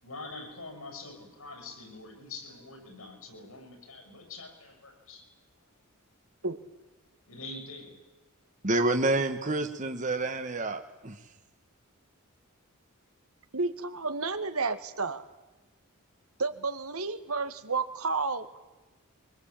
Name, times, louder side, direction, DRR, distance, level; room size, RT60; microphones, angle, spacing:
voice 1, 0.0-5.2 7.3-8.0, left 3 dB, 75° left, 5 dB, 7.7 m, -45 dB
voice 2, 8.6-11.2, right 2 dB, 35° right, 6 dB, 1.5 m, -28 dB
voice 3, 13.5-15.2 16.4-18.6, right 4 dB, 85° right, 9 dB, 2.2 m, -31 dB
24.5 x 23.0 x 8.9 m, 1.1 s
head